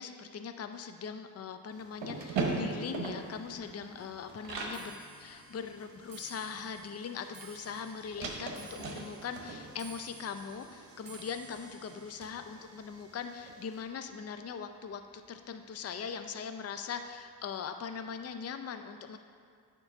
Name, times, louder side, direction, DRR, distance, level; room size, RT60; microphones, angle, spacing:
voice 1, 0.0-19.2, left 6 dB, 35° left, 8 dB, 0.5 m, -41 dB
sound 1, 1.7-4.8 5.2-5.3 5.6-13.6, right 3 dB, 85° right, 0.9 m, -40 dB
Clock, 2.1-15.5 15.8-16.3 17.1-17.2 17.5-17.9 18.1-18.2, right 4 dB, 50° right, 1.1 m, -55 dB
8.8 x 3.0 x 5.9 m, 2.2 s
cardioid pair, 45°, 43 cm